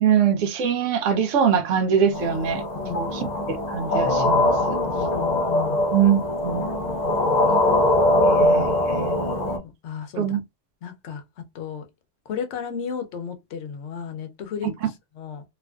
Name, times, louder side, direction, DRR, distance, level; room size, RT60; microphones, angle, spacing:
voice 1, 0.0-2.6 2.9-4.8 5.9-6.7 8.2-9.6 10.2-10.4, right 8 dB, 85° right, 1.0 m, -23 dB
sound 1, 2.1-9.6, left 1 dB, 50° left, 0.6 m, -22 dB
voice 2, 2.8-3.4 4.9-5.8 9.6-10.4 10.8-11.2 11.5-11.8 12.3-15.4, left 7 dB, 70° left, 0.9 m, -34 dB
2.9 x 2.4 x 2.2 m
omnidirectional pair, 1.3 m